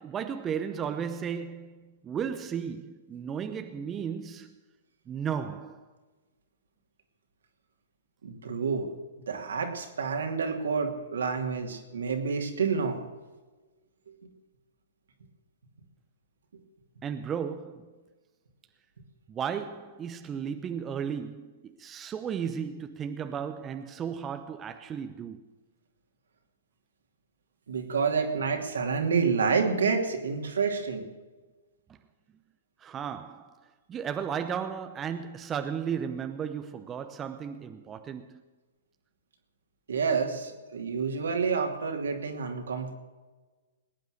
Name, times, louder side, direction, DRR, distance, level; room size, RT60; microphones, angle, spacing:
voice 1, 0.0-4.6 5.1-5.9 17.0-18.0 19.3-25.4 31.9-32.0 32.8-38.4, right 7 dB, 20° right, 0.8 m, -35 dB
voice 2, 8.2-8.9 9.3-13.0 27.7-31.1 39.9-42.9, right 5 dB, 75° right, 2.7 m, -28 dB
20.5 x 9.2 x 6.5 m
hypercardioid pair, 125°, 0 cm